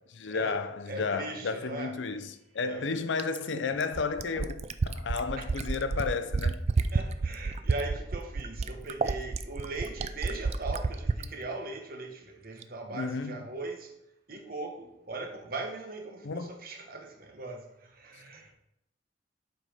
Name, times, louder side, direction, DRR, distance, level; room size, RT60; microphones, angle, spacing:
voice 1, 0.1-6.6 12.9-13.4 16.2-16.6 18.1-18.2, left 4 dB, 90° left, 0.5 m, -33 dB
voice 2, 0.9-1.9 2.6-3.0 5.4-5.5 6.8-13.9 14.3-18.5, right 3 dB, 50° right, 1.2 m, -39 dB
Fill (with liquid), 3.2-11.3 12.6-12.7, right 4 dB, 35° right, 0.3 m, -30 dB
7.9 x 4.1 x 5.0 m
head